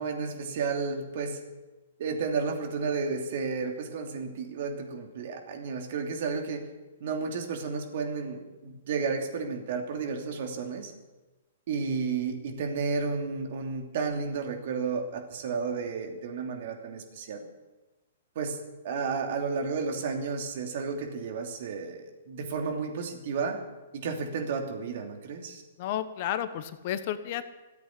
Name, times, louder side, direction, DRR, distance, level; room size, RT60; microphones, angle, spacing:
voice 1, 0.0-1.4 2.0-6.7 7.0-10.9 11.7-17.5 18.3-23.6 23.9-25.6, right 5 dB, 55° right, 3 dB, 2.9 m, -32 dB
voice 2, 25.8-27.4, left 11 dB, 45° left, 11 dB, 1.2 m, -32 dB
14.5 x 8.4 x 9.6 m, 1.1 s
hypercardioid pair, 125°, 0 cm